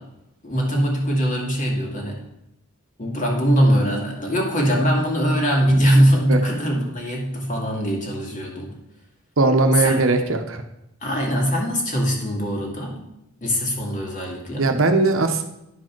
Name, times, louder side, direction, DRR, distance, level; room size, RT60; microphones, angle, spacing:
voice 1, 0.4-2.2 3.0-8.7 9.8-9.9 11.0-13.0 13.4-14.7, equal, 35° left, -1 dB, 2.2 m, -21 dB
voice 2, 9.4-10.6 14.6-15.4, right 3 dB, 65° right, 6 dB, 0.9 m, -19 dB
10.5 x 5.1 x 6.0 m, 0.85 s
head